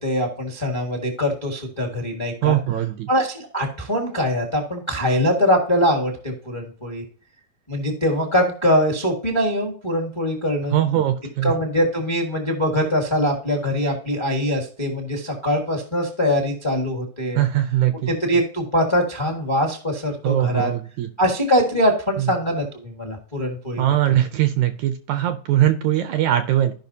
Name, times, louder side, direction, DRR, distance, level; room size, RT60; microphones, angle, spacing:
voice 1, 0.0-2.6 3.1-7.0 7.7-10.7 11.4-17.4 18.2-20.7 21.2-23.8, equal, 25° left, 2 dB, 0.5 m, -22 dB
voice 2, 2.4-3.1 10.7-11.5 17.4-18.1 20.2-21.1 22.2-22.3 23.8-26.7, right 12 dB, 75° right, 8 dB, 1.8 m, -21 dB
15.0 x 5.6 x 2.8 m, 0.43 s
omnidirectional pair, 3.8 m